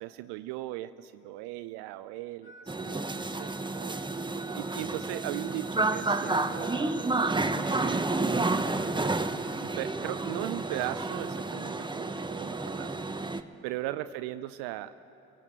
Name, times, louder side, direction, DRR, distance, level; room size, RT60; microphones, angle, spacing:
voice 1, 0.0-4.0 4.5-8.7 9.6-13.1 13.6-14.9, right 15 dB, 65° right, 12 dB, 0.7 m, -38 dB
Harmonica, 2.4-10.0, right 1 dB, 60° left, 3.9 m, -51 dB
sound 1, 2.7-13.4, right 2 dB, 10° right, 1.2 m, -30 dB
27.5 x 17.5 x 8.1 m, 2.9 s
figure-of-eight pair, 50°, 42 cm